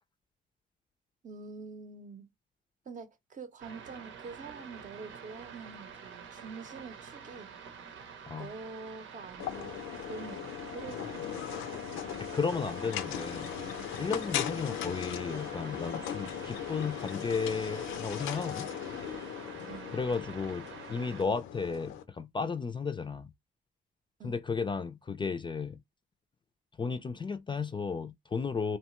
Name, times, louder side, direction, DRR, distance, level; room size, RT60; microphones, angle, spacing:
voice 1, 1.2-2.3 2.9-7.5 8.4-11.4 19.7-19.9 24.2-24.4, right 4 dB, 40° right, 0.7 m, -46 dB
sound 1, 3.6-21.2, right 6 dB, 75° right, 0.8 m, -47 dB
sound 2, 9.4-22.0, left 10 dB, 85° left, 0.5 m, -38 dB
voice 2, 12.2-13.5 14.0-18.7 19.9-23.3 24.2-25.8 26.8-28.8, left 5 dB, 25° left, 0.4 m, -34 dB
2.8 x 2.2 x 2.9 m
cardioid pair, 90°, 20 cm